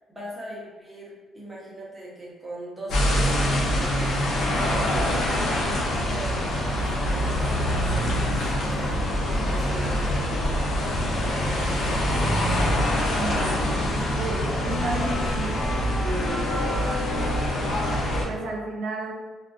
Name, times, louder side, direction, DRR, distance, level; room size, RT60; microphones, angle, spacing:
voice 1, 0.1-4.2 4.5-5.1 6.0-6.4 6.6-10.4 11.1-12.2, right 1 dB, 10° right, -6 dB, 0.8 m, -39 dB
sound 1, 2.9-18.2, equal, 80° left, 0.5 m, -24 dB
voice 2, 13.1-16.5 18.3-19.1, right 2 dB, 80° right, -1 dB, 0.5 m, -33 dB
2.5 x 2.1 x 2.3 m, 1.3 s
cardioid pair, 90°, 0 cm